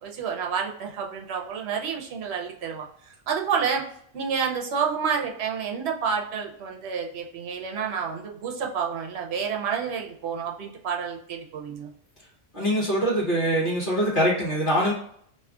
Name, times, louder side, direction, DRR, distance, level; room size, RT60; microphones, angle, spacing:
voice 1, 0.0-2.9 3.3-3.9 4.1-11.9, right 6 dB, 75° right, 1 dB, 0.9 m, -29 dB
voice 2, 12.5-14.9, equal, 50° left, -7 dB, 1.1 m, -23 dB
2.7 x 2.4 x 3.6 m, 0.64 s
omnidirectional pair, 1.1 m